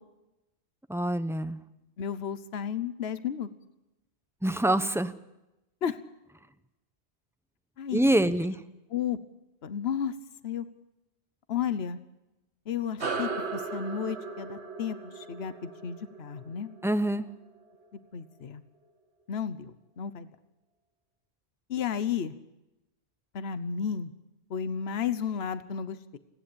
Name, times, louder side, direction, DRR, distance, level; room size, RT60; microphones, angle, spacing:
voice 1, 0.9-1.6 4.4-5.1 7.9-8.6 16.8-17.3, right 1 dB, 5° right, 11 dB, 0.8 m, -25 dB
voice 2, 2.0-3.5 5.8-6.0 7.8-8.0 8.9-9.2 9.6-10.1 10.4-10.6 11.5-12.0 12.7-16.7 18.1-18.6 19.3-20.3 21.7-22.3 23.3-24.1 24.5-26.2, left 8 dB, 70° left, 12 dB, 1.2 m, -33 dB
sound 1, 13.0-17.8, right 4 dB, 80° right, 2.0 m, -37 dB
29.5 x 10.5 x 8.6 m, 0.94 s
omnidirectional pair, 1.1 m